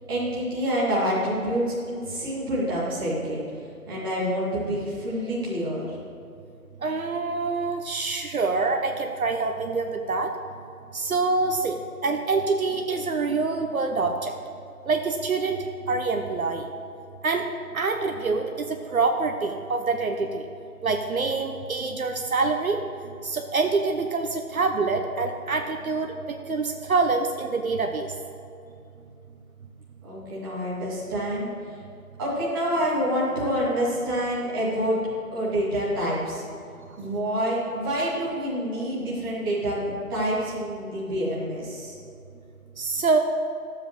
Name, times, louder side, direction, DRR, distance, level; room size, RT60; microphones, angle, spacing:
voice 1, 0.1-3.4 3.9-6.0 30.0-31.5 32.2-35.0 35.3-36.4 37.0-42.0, equal, 15° right, -8 dB, 1.6 m, -27 dB
voice 2, 6.8-10.3 10.9-11.8 12.0-14.3 14.9-16.6 17.2-17.5 17.7-20.4 20.8-22.8 23.2-26.1 26.5-28.1 42.8-43.2, right 3 dB, 65° right, 4 dB, 0.8 m, -25 dB
13.0 x 7.5 x 3.2 m, 2.6 s
figure-of-eight pair, 160°, 46 cm